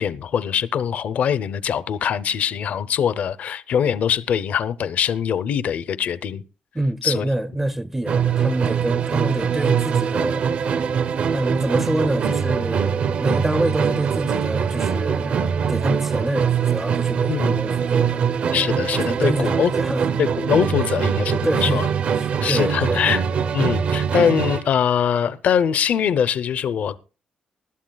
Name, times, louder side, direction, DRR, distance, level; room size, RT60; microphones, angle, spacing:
voice 1, 0.0-6.4 7.0-7.2 17.3-17.6 18.5-19.7 20.2-21.9 22.4-23.2 23.5-27.0, left 8 dB, 55° left, 0.7 m, -22 dB
voice 2, 6.7-10.5 11.3-18.2 19.0-20.0 21.4-21.8 22.1-23.0, right 1 dB, 10° right, 0.5 m, -26 dB
Musical instrument, 8.0-24.7, right 7 dB, 45° right, 0.7 m, -23 dB
19.5 x 13.0 x 2.3 m
wide cardioid pair, 180°, 3 cm